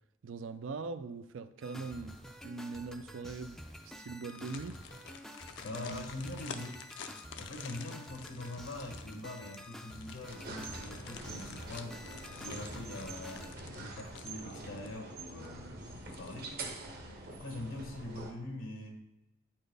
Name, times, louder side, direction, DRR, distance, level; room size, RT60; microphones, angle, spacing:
voice 1, 0.2-2.2 2.4-3.6 3.8-4.8 5.7-6.0, right 4 dB, 65° right, 0.4 m, -41 dB
sound 1, 1.6-13.5, equal, ahead, 0.4 m, -49 dB
sound 2, 4.1-15.1 15.4-15.5 16.0-16.6 17.0-17.1, left 6 dB, 60° left, 0.5 m, -50 dB
voice 2, 5.6-6.8 7.4-12.1 12.4-16.5 17.3-19.0, left 2 dB, 75° left, 1.0 m, -43 dB
sound 3, 10.3-18.3, right 2 dB, 50° right, 0.9 m, -45 dB
8.6 x 4.4 x 3.3 m
head